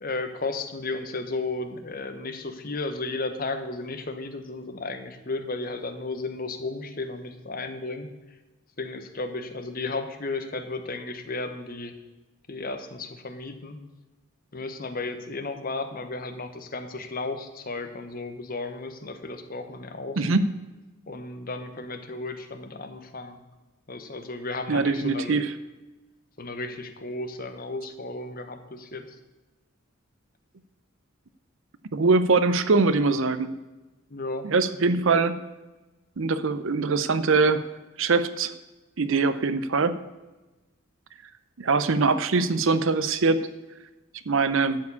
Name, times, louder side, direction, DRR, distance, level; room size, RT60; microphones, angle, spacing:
voice 1, 0.0-8.1 8.8-11.9 12.5-13.8 14.5-20.2 21.1-23.4 23.9-25.4 26.4-29.2 34.1-34.5, left 3 dB, 40° left, 8 dB, 1.0 m, -34 dB
voice 2, 20.2-20.5 24.7-25.5 31.9-33.5 34.4-35.4 36.2-37.6 38.0-38.5 39.0-40.0 41.6-43.4 44.3-44.8, right 4 dB, 65° right, 13 dB, 0.6 m, -22 dB
13.0 x 4.7 x 8.4 m, 1.1 s
head